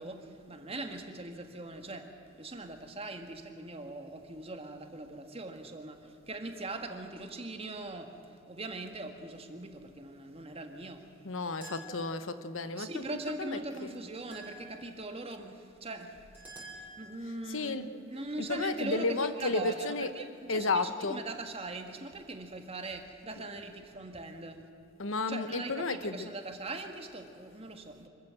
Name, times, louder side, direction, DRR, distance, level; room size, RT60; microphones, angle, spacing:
voice 1, 0.0-2.1 2.3-11.0 12.8-24.6 25.3-28.1, right 2 dB, 30° right, 5 dB, 1.7 m, -41 dB
voice 2, 11.2-13.9 17.5-17.8 18.4-20.1 20.5-21.2 25.0-26.3, left 3 dB, 85° left, 11 dB, 1.1 m, -33 dB
sound 1, 11.6-12.4 14.3-15.0 16.3-17.3, right 1 dB, 10° right, 6.0 m, -49 dB
25.5 x 14.0 x 7.6 m, 2.6 s
head